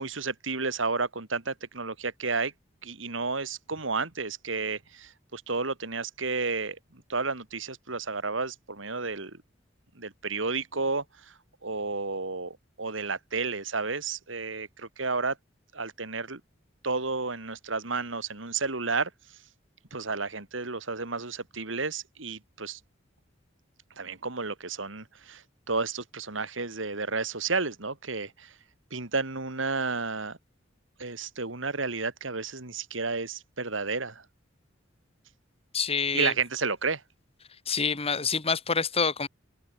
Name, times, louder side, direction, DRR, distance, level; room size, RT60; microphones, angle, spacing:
voice 1, 0.0-2.5 2.8-9.4 9.9-11.3 11.6-15.4 15.7-16.4 16.8-19.1 19.9-22.8 24.0-28.5 28.9-30.4 31.0-34.2 36.1-37.0, right 4 dB, 85° right, 2.9 m, -32 dB
voice 2, 35.7-36.3 37.7-39.3, left 5 dB, 30° left, 1.9 m, -27 dB
head